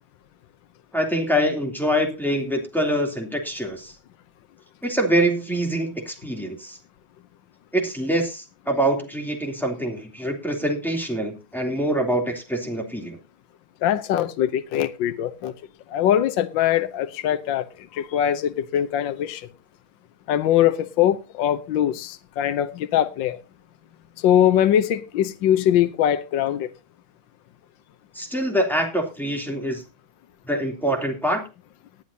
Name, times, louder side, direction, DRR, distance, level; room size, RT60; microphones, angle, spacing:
voice 1, 0.9-3.9 4.8-6.8 7.7-13.2 28.1-29.8 30.5-31.4, right 1 dB, ahead, 2.8 m, -25 dB
voice 2, 13.8-15.5 15.9-19.5 20.3-23.4 24.2-26.7, left 10 dB, 70° left, 1.5 m, -22 dB
19.0 x 10.0 x 2.8 m
omnidirectional pair, 2.2 m